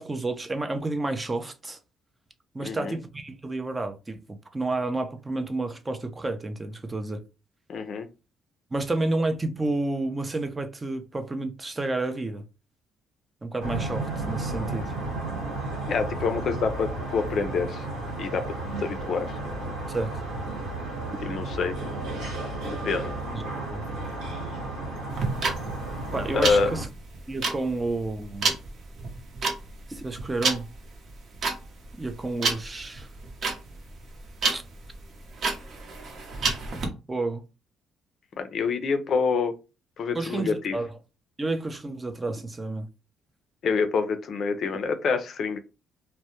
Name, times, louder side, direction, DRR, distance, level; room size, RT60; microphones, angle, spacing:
voice 1, 0.0-1.8 2.5-7.2 8.7-12.4 13.4-14.9 19.9-20.2 23.3-23.8 26.1-26.9 27.3-28.6 29.9-30.7 32.0-33.1 34.5-34.6 37.1-37.4 40.1-41.0 41.4-42.9, right 2 dB, 20° right, 0.4 m, -30 dB
voice 2, 2.6-3.0 7.7-8.1 15.9-17.8 18.2-18.4 18.8-19.4 21.2-21.7 22.6-23.2 26.3-26.7 38.4-39.6 40.0-40.8 43.6-45.6, left 5 dB, 60° left, 0.4 m, -26 dB
sound 1, 13.6-26.8, right 2 dB, 85° right, 1.1 m, -33 dB
sound 2, 25.1-36.9, right 4 dB, 55° right, 0.7 m, -30 dB
2.2 x 2.0 x 2.8 m
cardioid pair, 90°, 0 cm